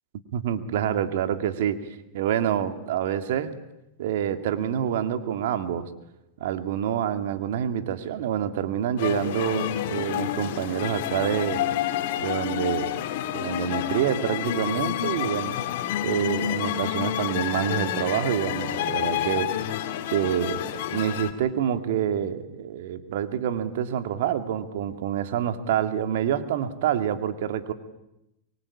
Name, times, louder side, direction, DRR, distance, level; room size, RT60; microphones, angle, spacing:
voice 1, 0.3-1.8 2.1-3.5 4.0-5.9 6.4-11.6 12.2-12.9 13.3-15.6 16.0-19.5 20.1-27.7, right 9 dB, 75° right, 9 dB, 2.4 m, -27 dB
sound 1, 9.0-21.3, left 11 dB, 70° left, 2.6 m, -29 dB
24.5 x 23.5 x 8.7 m, 0.88 s
supercardioid pair, 130°, 0 cm